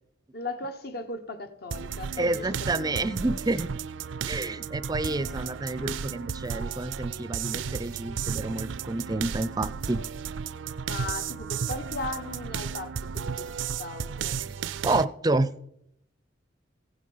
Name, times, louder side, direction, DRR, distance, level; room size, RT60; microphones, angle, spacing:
voice 1, 0.3-3.2 10.9-14.4, left 2 dB, 55° left, 1.1 m, -38 dB
sound 1, 1.7-15.0, right 6 dB, 75° right, 0.4 m, -34 dB
voice 2, 2.2-3.7 4.3-10.0 14.4-14.5 14.8-15.5, right 2 dB, 20° right, 0.5 m, -29 dB
15.5 x 8.4 x 5.6 m
head